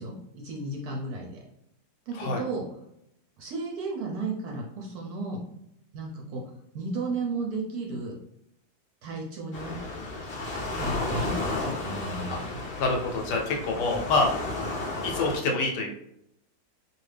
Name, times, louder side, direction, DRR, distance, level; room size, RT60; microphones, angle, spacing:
voice 1, 0.0-1.4 2.1-2.6 3.4-5.4 5.9-6.4 6.7-8.2 9.0-9.8 10.7-11.3 11.6-12.5, right 3 dB, 70° right, -1 dB, 1.0 m, -33 dB
Waves surf, 9.5-15.4, left 2 dB, 55° left, 0.6 m, -33 dB
voice 2, 12.8-14.3 15.0-15.9, left 3 dB, 75° left, 1 dB, 1.1 m, -26 dB
2.7 x 2.4 x 3.2 m, 0.77 s
omnidirectional pair, 2.0 m